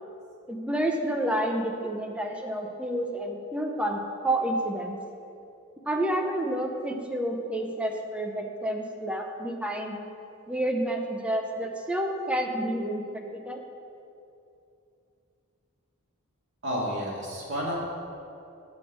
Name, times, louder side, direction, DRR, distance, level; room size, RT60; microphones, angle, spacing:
voice 1, 0.5-5.0 5.9-10.0 10.5-13.6, right 1 dB, 5° right, 2 dB, 0.6 m, -29 dB
voice 2, 16.6-18.0, equal, 55° right, -4 dB, 1.9 m, -31 dB
7.5 x 6.2 x 6.1 m, 2.6 s
head